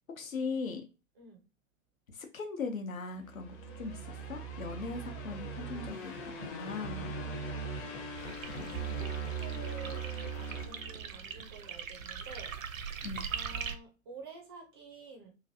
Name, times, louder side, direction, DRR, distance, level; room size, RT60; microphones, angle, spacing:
voice 1, 0.2-0.8 2.1-7.7 8.5-9.0 13.0-13.3, left 4 dB, 75° left, 0.9 m, -40 dB
sound 1, 3.2-11.5, right 4 dB, 20° left, 0.6 m, -40 dB
voice 2, 3.6-4.0 7.1-8.1 8.7-12.5 13.3-15.3, right 4 dB, 20° right, 0.4 m, -50 dB
sound 2, 8.2-13.7, right 6 dB, 70° right, 0.6 m, -41 dB
3.0 x 2.5 x 2.7 m
figure-of-eight pair, 115°, 42 cm